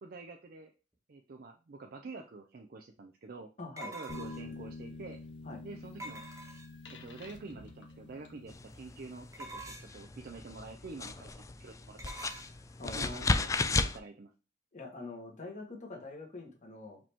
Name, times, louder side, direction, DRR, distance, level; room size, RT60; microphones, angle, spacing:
voice 1, 0.0-0.7 1.1-3.5 3.9-5.2 5.6-6.2 6.9-12.3 12.8-14.3, right 3 dB, 55° right, 3 dB, 0.5 m, -47 dB
sound 1, 2.2-2.3 3.8-4.6 6.0-6.9 9.3-10.0 12.0-12.5, right 2 dB, 20° right, 1.2 m, -45 dB
voice 2, 3.6-3.9 5.4-5.6 12.8-13.4 14.7-17.0, left 2 dB, 45° left, 0 dB, 1.5 m, -44 dB
sound 2, 4.1-9.0, left 3 dB, 75° left, 0.9 m, -47 dB
sound 3, 8.5-14.0, left 3 dB, 20° left, 0.3 m, -35 dB
5.0 x 2.9 x 3.5 m, 0.34 s
head